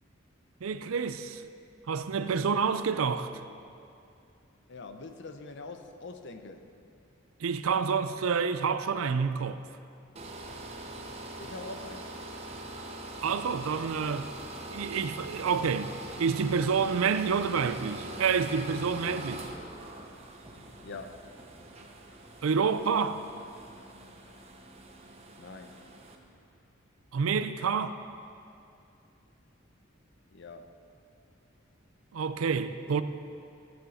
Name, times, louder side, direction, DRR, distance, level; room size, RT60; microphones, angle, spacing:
voice 1, 0.6-1.4 1.9-3.4 7.4-9.6 13.2-14.3 14.7-19.5 22.4-23.2 27.1-27.9 32.1-33.0, right 5 dB, 90° right, 12 dB, 0.5 m, -28 dB
voice 2, 4.7-6.7 11.4-12.2 20.8-21.3 25.4-25.8 30.3-30.8, left 3 dB, 60° left, 7 dB, 0.7 m, -44 dB
sound 1, 10.2-26.2, right 2 dB, 30° right, 0.8 m, -43 dB
sound 2, 10.3-25.1, right 1 dB, 10° right, 1.1 m, -55 dB
14.0 x 8.0 x 4.2 m, 2.5 s
head